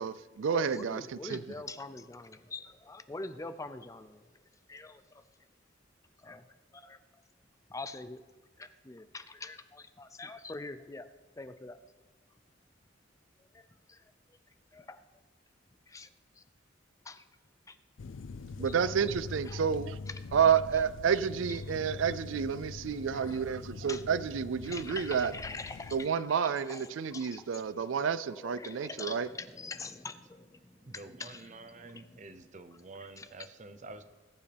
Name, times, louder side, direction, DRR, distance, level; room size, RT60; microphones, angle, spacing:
voice 1, 0.0-1.4 18.6-20.0 20.3-25.3 25.9-29.3, right 7 dB, 80° right, 16 dB, 0.4 m, -30 dB
voice 2, 0.5-4.2 4.7-5.0 6.2-6.4 6.7-7.0 7.7-8.2 8.6-11.1 11.4-11.8 13.5-14.0 14.7-15.0 15.9-16.1 17.1-17.2 17.7-17.8 18.7-18.9 19.5-19.6 20.1-20.2 23.1-23.6 23.9-24.0 24.6-26.1 26.4-27.5 28.3-32.2 33.2-33.3, left 3 dB, 15° left, 11 dB, 0.4 m, -44 dB
sound 1, 18.0-26.1, left 4 dB, 80° left, 0.5 m, -43 dB
voice 3, 30.8-34.0, right 2 dB, 40° right, 10 dB, 0.7 m, -48 dB
19.5 x 9.2 x 3.4 m, 1.2 s
head